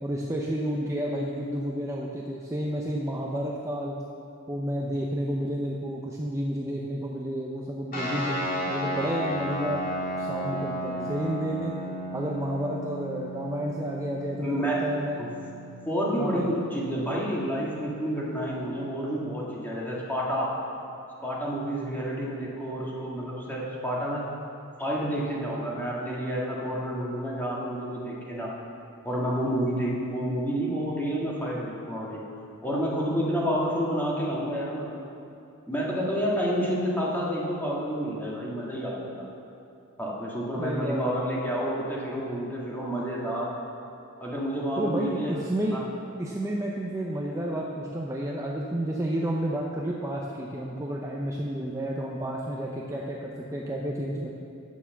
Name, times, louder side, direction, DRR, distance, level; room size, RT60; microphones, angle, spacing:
voice 1, 0.0-4.0 4.5-8.4 8.7-9.9 10.2-11.8 12.1-15.2 16.2-16.5 40.6-41.6 44.8-45.8 46.2-54.3, right 1 dB, 15° right, -3 dB, 0.7 m, -31 dB
sound 1, 7.9-18.8, equal, 40° left, 2.8 m, -35 dB
voice 2, 14.4-14.9 15.2-15.3 15.9-20.6 21.2-24.2 24.8-28.5 29.0-32.2 32.6-35.0 35.7-39.3 40.0-43.6 44.2-45.4 45.7-45.8, equal, 10° left, -5 dB, 2.0 m, -29 dB
9.3 x 6.9 x 7.3 m, 2.6 s
head